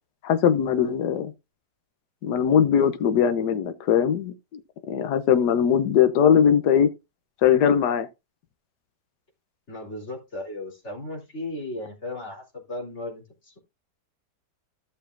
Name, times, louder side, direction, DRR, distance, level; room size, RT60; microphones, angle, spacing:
voice 1, 0.2-1.3 2.2-4.3 4.9-6.9 7.4-8.1, left 8 dB, 75° left, 1.5 m, -20 dB
voice 2, 9.7-13.6, left 2 dB, 40° left, 3.9 m, -36 dB
14.5 x 6.7 x 2.6 m
omnidirectional pair, 1.8 m